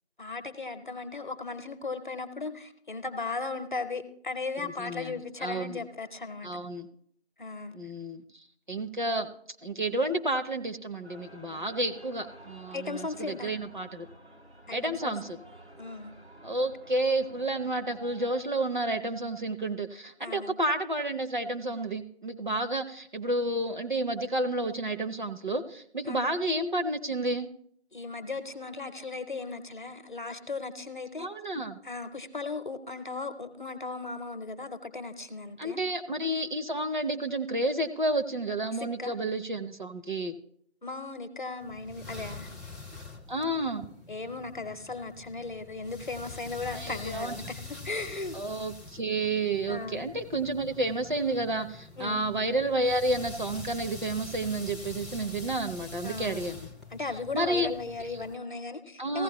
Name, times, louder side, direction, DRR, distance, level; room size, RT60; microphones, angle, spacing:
voice 1, 0.2-6.5 7.4-7.7 12.7-13.5 14.7-15.1 15.8-16.1 20.2-20.5 26.1-26.3 27.9-31.3 31.8-35.8 39.0-39.1 40.8-42.5 44.1-48.4 49.7-50.0 52.0-52.3 56.0-56.5 56.9-59.2, left 3 dB, 50° left, 10 dB, 0.8 m, -37 dB
voice 2, 4.6-5.1 5.4-5.8 6.4-6.9 7.7-9.3 9.6-14.1 14.7-15.4 16.4-27.5 31.2-31.8 35.6-40.3 43.3-43.8 46.7-47.3 48.3-56.7 57.3-57.7 59.0-59.2, right 1 dB, 45° right, 6 dB, 0.7 m, -30 dB
sound 1, 11.0-18.4, right 1 dB, 85° right, 2.7 m, -51 dB
sound 2, 41.6-58.4, left 3 dB, ahead, 0.5 m, -45 dB
15.5 x 10.5 x 3.0 m, 0.66 s
figure-of-eight pair, 170°, 32 cm